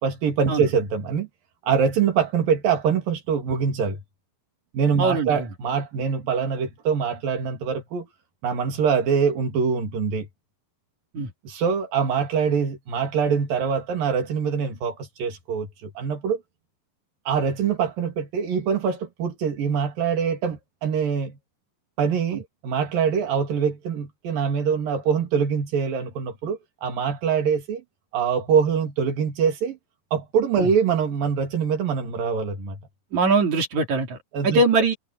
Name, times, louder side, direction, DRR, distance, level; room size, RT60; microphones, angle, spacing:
voice 1, 0.0-1.3 1.6-4.0 4.7-8.1 8.4-10.3 11.4-16.4 17.3-21.4 22.0-27.8 28.1-29.8 30.1-32.8 34.3-34.6, right 6 dB, 80° right, 4.7 m, -24 dB
voice 2, 5.0-5.5 11.1-11.3 30.6-30.7 33.1-34.2 34.4-35.0, right 3 dB, 55° right, 4.5 m, -21 dB
omnidirectional pair, 4.0 m